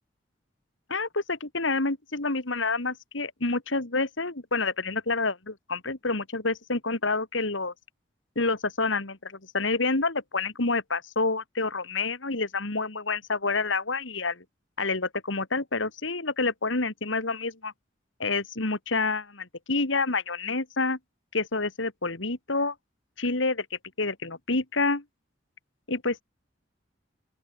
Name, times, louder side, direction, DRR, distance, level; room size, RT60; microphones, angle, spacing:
voice 1, 0.9-7.7 8.4-14.4 14.8-17.7 18.2-21.0 21.3-22.7 23.2-25.0 25.9-26.2, left 3 dB, 75° left, 2.5 m, -28 dB
open air
head